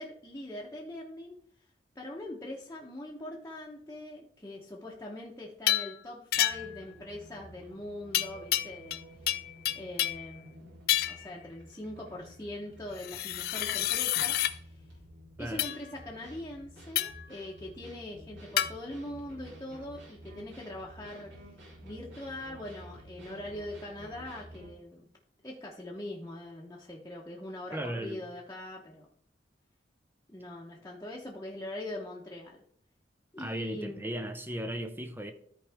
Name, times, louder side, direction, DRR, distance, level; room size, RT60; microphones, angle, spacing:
voice 1, 0.0-1.3 1.9-9.0 9.7-10.8 11.1-14.8 15.4-21.3 21.8-25.1 25.4-29.1 30.3-32.6 33.3-34.0, left 1 dB, 15° left, -4 dB, 1.0 m, -42 dB
sound 1, 5.7-5.9 6.3-6.8 8.1-9.0 9.3-10.3 10.9-11.3 13.0-14.5 15.6-15.8 16.9-17.3 18.6-18.7, left 13 dB, 55° left, 0.4 m, -29 dB
sound 2, 6.3-24.7, equal, 75° right, 3.3 m, -51 dB
voice 2, 27.7-28.2 33.4-35.3, right 1 dB, 10° right, 8 dB, 0.7 m, -36 dB
13.0 x 4.7 x 3.5 m, 0.63 s
head